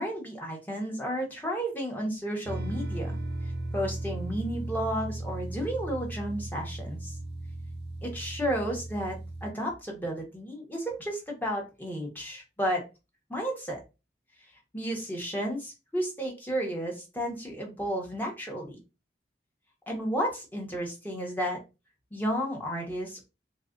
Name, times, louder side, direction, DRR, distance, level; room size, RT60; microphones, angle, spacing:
voice 1, 0.0-3.2 3.7-7.1 8.0-12.8 13.3-13.8 14.7-18.8 19.9-21.6 22.1-23.3, equal, 10° left, 0 dB, 1.0 m, -32 dB
sound 1, 2.4-9.5, right 1 dB, 65° right, 0.7 m, -36 dB
4.0 x 2.3 x 2.5 m, 0.27 s
head